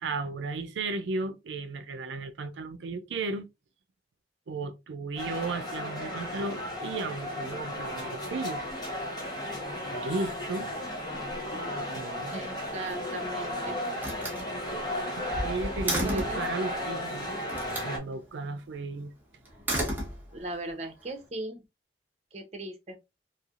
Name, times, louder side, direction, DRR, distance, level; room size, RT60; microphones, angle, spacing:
voice 1, 0.0-3.5 4.5-8.6 9.8-10.7 11.5-12.4 15.2-17.3 17.8-19.1, right 3 dB, 80° right, 0.4 m, -35 dB
sound 1, 5.2-18.0, left 1 dB, 20° left, 0.9 m, -34 dB
voice 2, 12.3-13.8 16.0-16.5 20.3-21.6 22.3-23.0, right 2 dB, 40° right, 0.7 m, -38 dB
Slam, 12.9-13.5 14.0-16.5 17.5-17.9 19.4-20.6, right 1 dB, 10° right, 0.9 m, -33 dB
3.2 x 2.6 x 2.4 m
head